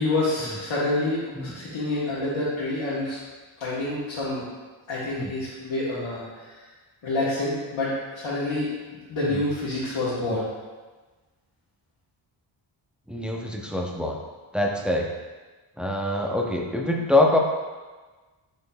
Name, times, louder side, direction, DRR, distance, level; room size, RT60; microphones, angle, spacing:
voice 1, 0.0-3.2 3.6-4.5 4.9-6.5 7.0-8.8 9.1-10.5, left 2 dB, 70° left, -9 dB, 1.1 m, -27 dB
voice 2, 13.1-14.2 14.5-15.1 15.8-17.4, left 1 dB, ahead, 0 dB, 0.5 m, -25 dB
5.1 x 4.1 x 2.2 m, 1.3 s
cardioid pair, 65°, 49 cm